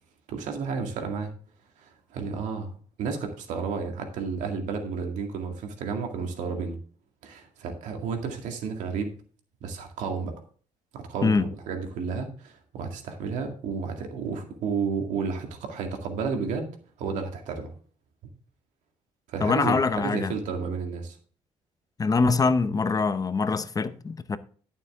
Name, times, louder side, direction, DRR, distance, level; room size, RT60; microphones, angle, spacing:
voice 1, 0.3-1.3 1.8-6.8 7.2-9.1 9.6-10.3 10.9-16.7 17.0-17.7 19.3-21.2, right 5 dB, 90° right, 2.1 m, -32 dB
voice 2, 19.4-20.3 22.0-24.4, left 4 dB, 30° left, 0.8 m, -24 dB
12.0 x 6.8 x 3.6 m
cardioid pair, 95°, 12 cm